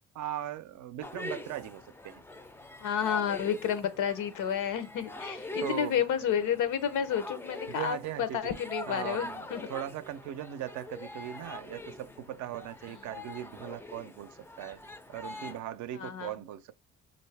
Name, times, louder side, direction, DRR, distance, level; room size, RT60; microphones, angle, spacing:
voice 1, 0.1-2.2 5.6-5.9 7.7-8.6 8.9-14.8 15.1-16.7, right 12 dB, 70° right, 0.5 m, -39 dB
sound 1, 1.0-15.6, left 2 dB, 10° left, 0.4 m, -44 dB
voice 2, 2.8-9.6 15.3-15.5 15.9-16.3, left 8 dB, 85° left, 0.7 m, -31 dB
3.4 x 2.6 x 3.3 m
cardioid pair, 90°, 30 cm